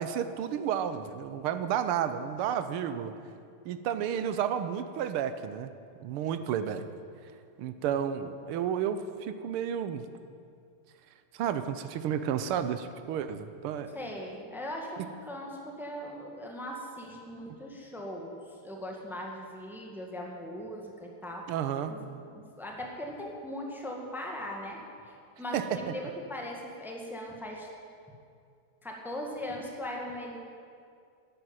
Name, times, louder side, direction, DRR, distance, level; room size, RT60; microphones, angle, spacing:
voice 1, 0.0-3.1 3.6-5.7 6.0-6.8 7.6-10.0 11.3-13.9 21.5-21.9 25.5-25.6, right 9 dB, 85° right, 10 dB, 1.7 m, -31 dB
voice 2, 13.9-18.4 18.6-21.6 21.9-24.8 25.4-27.7 28.8-30.4, equal, ahead, 0 dB, 1.6 m, -39 dB
11.0 x 11.0 x 8.9 m, 2.3 s
omnidirectional pair, 2.4 m